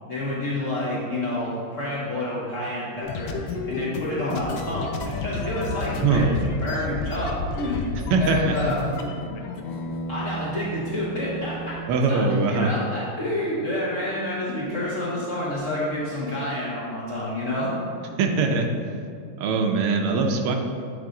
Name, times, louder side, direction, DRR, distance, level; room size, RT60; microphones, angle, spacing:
voice 1, 0.1-7.8 8.2-8.8 10.1-11.7 12.1-17.7, left 1 dB, 55° left, -7 dB, 0.8 m, -29 dB
sound 1, 3.0-11.8, left 3 dB, 80° left, 1.3 m, -32 dB
voice 2, 6.0-6.4 8.1-8.6 11.9-12.7 18.2-18.7 19.4-20.6, right 4 dB, 90° right, 3 dB, 1.5 m, -21 dB
8.3 x 3.3 x 3.7 m, 2.4 s
omnidirectional pair, 2.3 m